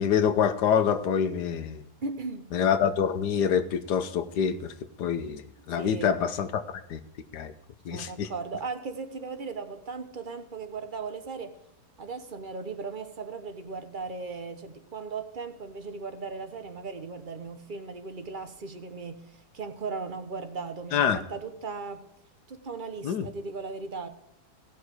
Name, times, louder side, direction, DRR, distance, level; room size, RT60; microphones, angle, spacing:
voice 1, 0.0-1.8 2.5-4.7 5.0-6.6 6.9-7.0 7.3-7.5 7.8-8.3 20.9-21.2 23.0-23.3, left 8 dB, 85° left, 1.5 m, -26 dB
voice 2, 2.0-2.5 5.6-6.2 7.9-11.5 12.0-22.1 22.5-24.1, right 4 dB, 35° right, 0.9 m, -37 dB
17.5 x 6.0 x 4.7 m
omnidirectional pair, 1.7 m